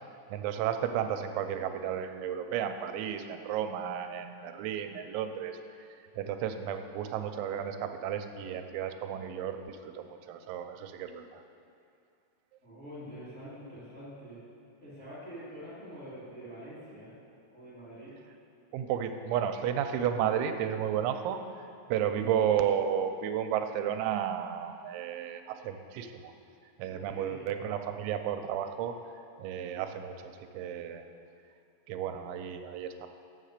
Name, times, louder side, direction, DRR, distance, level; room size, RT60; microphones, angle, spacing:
voice 1, 0.3-5.6 6.2-11.4 18.7-21.4 21.9-26.3 26.8-28.9 29.4-30.1 30.5-31.0 31.9-33.1, right 9 dB, 90° right, 7 dB, 3.0 m, -32 dB
voice 2, 12.6-14.4 14.8-17.2 17.5-18.1 22.1-22.3 26.8-27.5, equal, 30° left, -9 dB, 1.3 m, -45 dB
7.5 x 6.5 x 6.6 m, 2.4 s
omnidirectional pair, 5.3 m